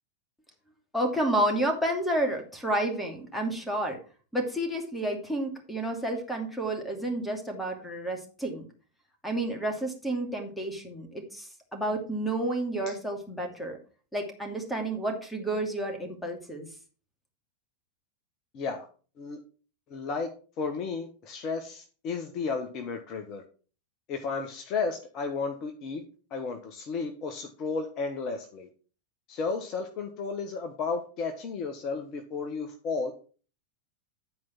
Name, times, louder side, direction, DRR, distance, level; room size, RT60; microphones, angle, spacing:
voice 1, 0.9-4.0 4.3-8.6 9.2-13.8 14.1-16.7, right 1 dB, 5° left, 2 dB, 2.6 m, -30 dB
voice 2, 18.5-18.9 19.2-19.4 19.9-20.3 20.6-23.4 24.1-26.0 26.3-28.7 29.3-33.1, left 4 dB, 35° left, 6 dB, 1.2 m, -33 dB
11.0 x 4.7 x 5.9 m, 0.38 s
figure-of-eight pair, 90°, 0 cm